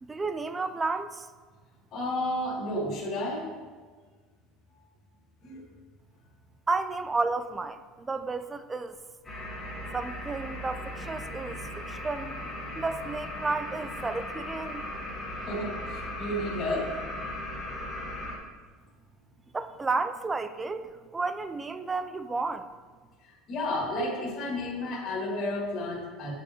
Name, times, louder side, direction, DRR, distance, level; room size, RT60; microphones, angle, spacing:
voice 1, 0.0-1.3 6.7-9.0 9.9-12.4 12.8-14.9 19.5-22.7, right 3 dB, 15° right, 11 dB, 0.3 m, -32 dB
voice 2, 1.9-3.5 5.4-5.6 15.4-16.9 23.2-26.3, left 1 dB, 40° left, -5 dB, 2.0 m, -32 dB
sound 1, 9.2-18.4, left 1 dB, 15° left, 1.6 m, -37 dB
10.0 x 6.4 x 3.0 m, 1.5 s
cardioid pair, 160°, 0 cm